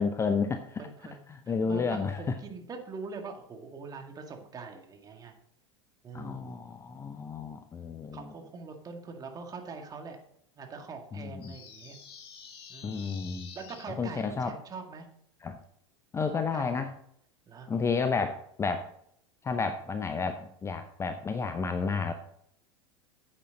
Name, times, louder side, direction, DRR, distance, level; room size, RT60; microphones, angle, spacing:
voice 1, 0.0-0.8 1.3-2.3 6.1-8.2 11.1-11.6 12.8-13.5 14.0-14.5 15.4-15.6 16.1-16.9 17.7-18.9 19.4-22.1, left 5 dB, 15° left, 8 dB, 0.7 m, -31 dB
voice 2, 0.8-1.2 1.7-5.3 6.0-6.5 8.1-10.2 10.6-12.0 12.7-13.1 13.5-15.1 16.3-16.8 17.5-17.7, right 4 dB, 25° right, 3 dB, 2.0 m, -43 dB
sound 1, 11.4-13.8, left 6 dB, 35° left, 2.3 m, -48 dB
9.9 x 8.4 x 3.8 m, 0.69 s
figure-of-eight pair, 85°, 16 cm